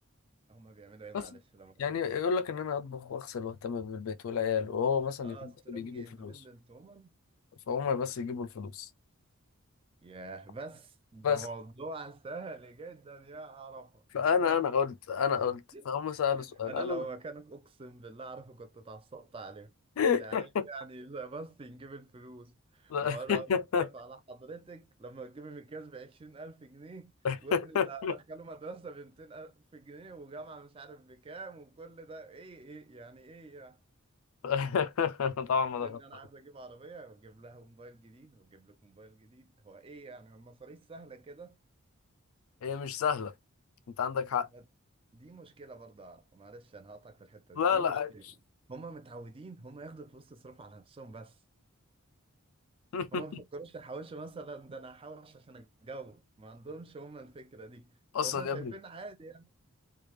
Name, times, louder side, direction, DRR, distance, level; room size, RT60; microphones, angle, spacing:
voice 1, 0.5-1.7 5.2-7.1 10.0-14.6 15.7-15.9 16.6-19.7 20.1-23.5 23.8-27.1 27.4-33.8 35.8-41.6 44.5-44.6 45.1-48.2 48.7-51.4 53.1-59.5, right 3 dB, 25° right, 0.4 m, -46 dB
voice 2, 1.8-6.4 7.7-8.9 11.2-11.4 14.1-15.6 15.9-17.0 20.0-20.7 22.9-23.9 27.2-28.2 34.4-36.0 42.6-43.3 44.0-44.5 47.6-48.1 52.9-53.2 58.1-58.7, left 6 dB, 70° left, 0.4 m, -30 dB
3.3 x 2.3 x 3.1 m
head